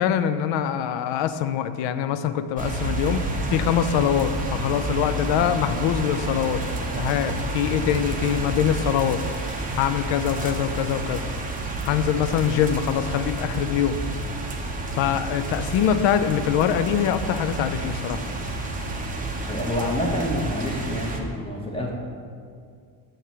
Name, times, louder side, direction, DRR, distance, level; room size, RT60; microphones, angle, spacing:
voice 1, 0.0-6.6 6.9-9.2 9.8-11.3 11.8-14.0 14.9-18.2, left 9 dB, 70° left, 11 dB, 0.5 m, -24 dB
sound 1, 2.6-21.2, right 2 dB, 20° right, 0.6 m, -30 dB
voice 2, 19.5-21.9, left 1 dB, 10° left, -2 dB, 1.0 m, -27 dB
6.5 x 3.1 x 5.7 m, 2.1 s
cardioid pair, 115°, 47 cm